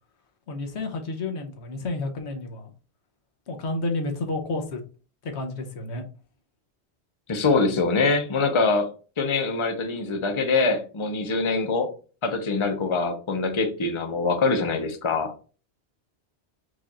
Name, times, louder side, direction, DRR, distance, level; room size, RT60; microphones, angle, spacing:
voice 1, 0.5-2.7 3.5-4.8 5.2-6.0, left 2 dB, 85° left, 3 dB, 1.2 m, -30 dB
voice 2, 7.3-8.9 9.2-11.9 12.2-15.3, left 3 dB, 30° left, 5 dB, 0.7 m, -24 dB
4.8 x 2.5 x 4.2 m, 0.36 s
omnidirectional pair, 1.1 m